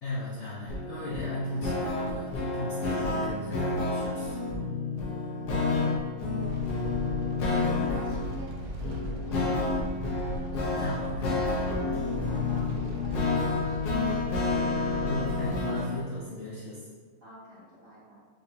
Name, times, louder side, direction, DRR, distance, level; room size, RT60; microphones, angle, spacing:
voice 1, 0.0-4.4 10.5-11.7 15.0-16.8, left 1 dB, 85° left, -6 dB, 0.7 m, -37 dB
sound 1, 0.7-16.0, left 3 dB, 60° left, 1.2 m, -30 dB
sound 2, 6.4-15.5, equal, 70° right, 1.2 m, -38 dB
voice 2, 7.5-10.0 11.7-14.4 17.2-18.3, equal, 45° right, -7 dB, 1.1 m, -48 dB
5.6 x 3.4 x 2.7 m, 1.5 s
omnidirectional pair, 2.4 m